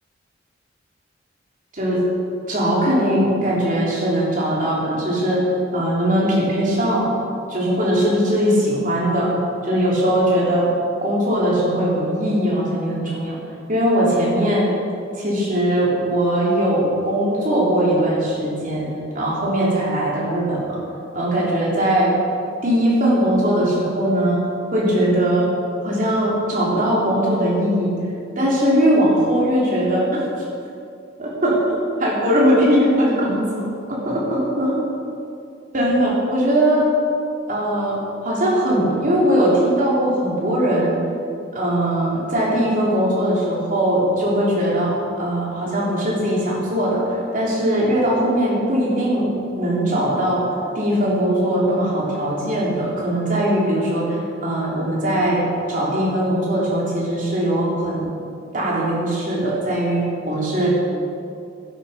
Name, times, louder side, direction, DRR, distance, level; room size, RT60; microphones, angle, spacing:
voice 1, 1.7-2.0 2.5-5.5 5.7-7.1 7.5-9.3 9.6-10.7 11.0-13.4 13.7-14.7 15.2-18.9 19.1-20.8 21.1-22.1 22.6-25.5 25.8-28.0 28.4-30.2 31.2-34.7 35.7-36.9 37.5-41.0 41.5-49.3 49.6-50.5 50.8-58.1 58.5-60.7, right 1 dB, 45° right, -5 dB, 3.5 m, -20 dB
12.0 x 10.5 x 5.2 m, 2.5 s
head